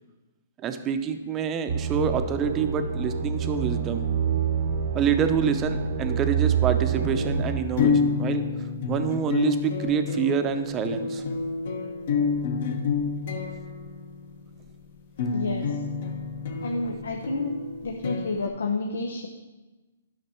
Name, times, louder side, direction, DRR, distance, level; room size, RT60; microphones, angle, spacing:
voice 1, 0.6-4.0 4.9-8.4 8.9-11.2, right 7 dB, 20° right, 8 dB, 0.7 m, -27 dB
sound 1, 1.7-7.6, right 7 dB, 50° right, 0.8 m, -27 dB
sound 2, 6.9-18.5, left 5 dB, 55° left, 1.1 m, -29 dB
voice 2, 15.3-15.8 16.6-17.5 17.8-19.3, left 3 dB, 90° left, 3 dB, 0.9 m, -30 dB
11.0 x 5.9 x 4.4 m, 1.2 s
hypercardioid pair, 150°, 0 cm